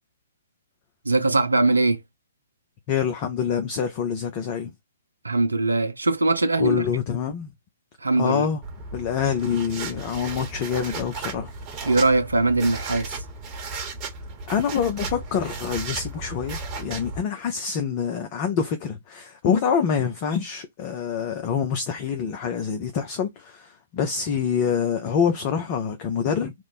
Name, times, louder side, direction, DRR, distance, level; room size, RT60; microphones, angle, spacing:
voice 1, 1.1-2.0 5.2-6.8 8.0-8.5 11.8-13.2, right 2 dB, 75° right, 0.5 m, -21 dB
voice 2, 2.9-4.7 6.6-7.5 8.2-8.6 8.9-11.5 14.5-26.5, left 7 dB, 35° left, 0.5 m, -26 dB
sound 1, 8.6-17.2, right 3 dB, 25° right, 1.0 m, -35 dB
3.0 x 2.0 x 4.0 m
figure-of-eight pair, 120°, 0 cm